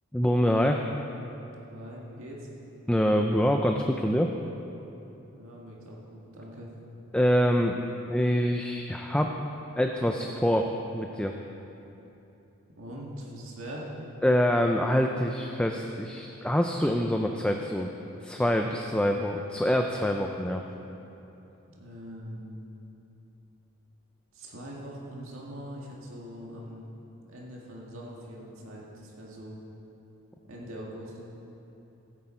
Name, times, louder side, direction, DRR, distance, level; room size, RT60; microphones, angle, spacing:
voice 1, 0.1-0.8 2.9-4.3 7.1-7.8 8.1-9.3 9.8-11.3 14.2-17.9 18.2-20.6, equal, 5° left, 3 dB, 0.4 m, -25 dB
voice 2, 1.7-2.5 5.3-6.7 12.8-13.9 21.8-22.7 24.3-26.9 27.2-29.6 30.5-31.2, equal, 70° right, -3 dB, 1.8 m, -42 dB
15.5 x 9.7 x 4.4 m, 3.0 s
head